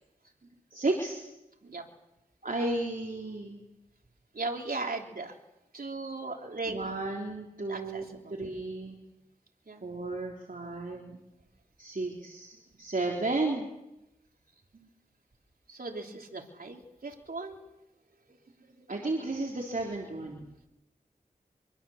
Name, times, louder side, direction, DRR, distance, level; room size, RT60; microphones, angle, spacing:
voice 1, 0.7-1.2 2.4-3.6 6.7-8.0 8.3-9.0 9.8-11.2 11.8-13.7 14.7-14.9 18.9-20.5, right 2 dB, 65° right, 0 dB, 3.6 m, -33 dB
voice 2, 4.3-5.3 5.7-6.8 7.7-8.4 9.7-9.8 15.7-17.6, right 3 dB, 80° right, 2 dB, 3.4 m, -37 dB
25.0 x 23.5 x 7.3 m, 0.91 s
wide cardioid pair, 50°, 15 cm